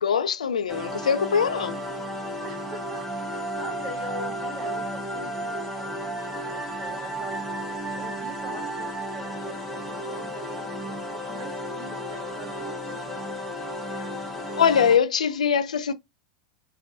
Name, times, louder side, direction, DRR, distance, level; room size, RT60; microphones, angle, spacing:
voice 1, 0.0-1.8 14.6-15.9, left 7 dB, 80° left, 0.3 m, -22 dB
sound 1, 0.7-15.0, equal, ahead, 1.2 m, -33 dB
voice 2, 2.4-7.5 7.9-13.3, right 1 dB, 35° right, 1.2 m, -43 dB
3.3 x 2.2 x 2.5 m
hypercardioid pair, 90°, 4 cm